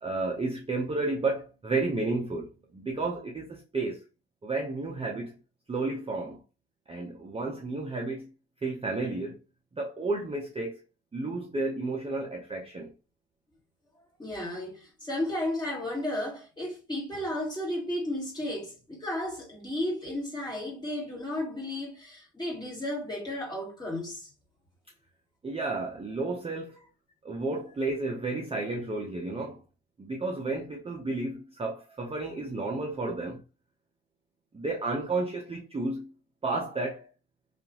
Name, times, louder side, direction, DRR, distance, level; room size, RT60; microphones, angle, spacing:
voice 1, 0.0-4.0 4.4-5.3 5.7-6.4 6.9-8.3 8.6-9.4 9.8-10.8 11.1-12.9 25.4-26.7 27.2-29.6 30.0-33.4 34.5-36.1 36.4-37.1, right 3 dB, 20° right, 0.6 m, -32 dB
voice 2, 14.2-24.3, left 1 dB, 15° left, 1.7 m, -33 dB
2.8 x 2.4 x 2.7 m
cardioid pair, 90°, 30 cm